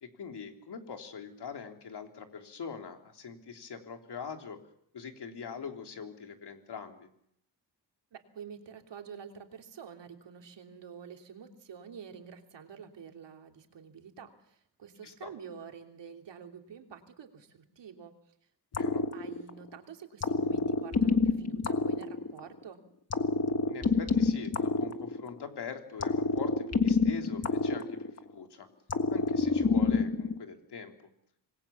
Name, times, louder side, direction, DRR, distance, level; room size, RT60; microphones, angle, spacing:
voice 1, 0.0-4.6 4.9-7.1 15.0-15.3 18.7-19.0 23.7-28.7 29.1-30.9, left 6 dB, 70° left, 5 dB, 3.6 m, -43 dB
voice 2, 8.1-18.2 18.8-22.8, right 7 dB, 85° right, 4 dB, 3.3 m, -48 dB
sound 1, 18.7-19.7 20.2-22.6 23.1-25.5 26.0-28.4 28.9-30.4, left 4 dB, 35° left, 1.6 m, -28 dB
27.0 x 20.5 x 7.2 m, 0.73 s
wide cardioid pair, 135°, 42 cm